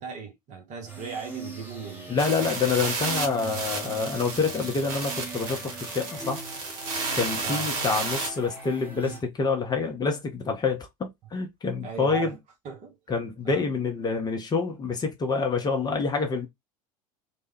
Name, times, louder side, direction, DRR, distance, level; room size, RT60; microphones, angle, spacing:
voice 1, 0.0-2.3 7.4-7.7 11.8-12.3 12.6-13.0 13.4-13.6 14.3-14.5, right 5 dB, 40° right, 1.0 m, -38 dB
sound 1, 0.9-9.2, right 3 dB, 10° right, 1.1 m, -41 dB
voice 2, 2.1-6.4 7.2-12.3 13.1-16.5, left 4 dB, 20° left, 0.7 m, -27 dB
sound 2, 2.2-8.3, right 3 dB, 60° right, 1.0 m, -32 dB
3.1 x 2.2 x 3.3 m
figure-of-eight pair, 75°, 20 cm